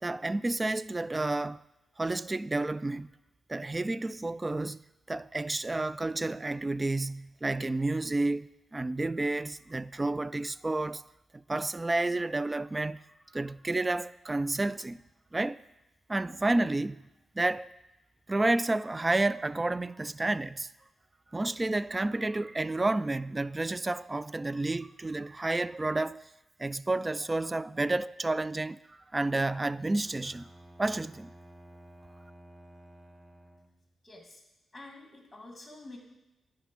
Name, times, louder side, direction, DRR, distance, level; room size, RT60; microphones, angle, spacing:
voice 1, 0.0-1.6 2.0-3.1 3.5-4.8 5.1-11.0 11.5-13.0 13.3-15.0 15.3-15.6 16.1-17.0 17.4-17.7 18.3-20.7 21.3-26.2 26.6-30.5 30.8-31.3, right 2 dB, 25° right, 0.3 m, -30 dB
Bowed string instrument, 30.0-34.0, right 1 dB, 10° right, 0.9 m, -53 dB
voice 2, 34.0-34.4 34.7-36.0, left 2 dB, 20° left, 2.2 m, -48 dB
11.0 x 3.8 x 7.5 m
supercardioid pair, 45°, 0 cm